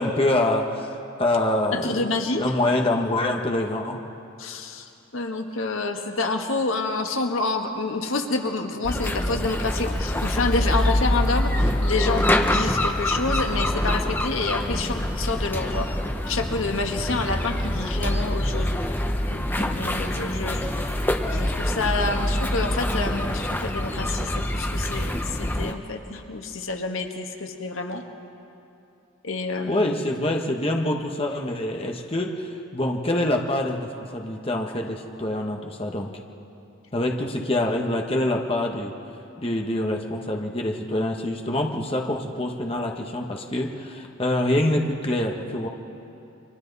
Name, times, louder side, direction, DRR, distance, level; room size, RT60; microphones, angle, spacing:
voice 1, 0.0-4.0 29.7-36.1 36.9-38.9 39.4-45.7, left 1 dB, 30° left, 1 dB, 1.3 m, -25 dB
voice 2, 1.7-2.4 4.4-16.0 16.3-18.8 19.3-28.0 29.2-29.8, left 3 dB, 85° left, 4 dB, 1.6 m, -28 dB
sound 1, 8.8-25.7, left 1 dB, 10° left, 0.8 m, -25 dB
29.5 x 24.0 x 4.1 m, 2.8 s
head